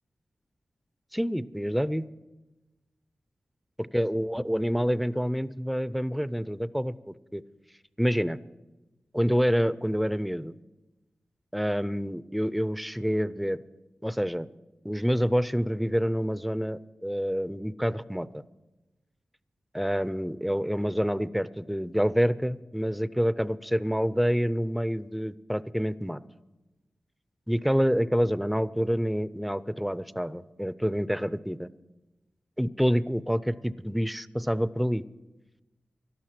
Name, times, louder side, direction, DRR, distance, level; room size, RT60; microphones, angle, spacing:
voice 1, 1.1-2.1 3.8-7.4 8.0-8.4 9.1-10.5 11.5-13.6 14.0-14.5 14.8-18.3 19.7-26.2 27.5-31.7 32.6-35.0, equal, ahead, 16 dB, 0.5 m, -27 dB
18.0 x 12.0 x 6.0 m, 1.1 s
wide cardioid pair, 70°, 3 cm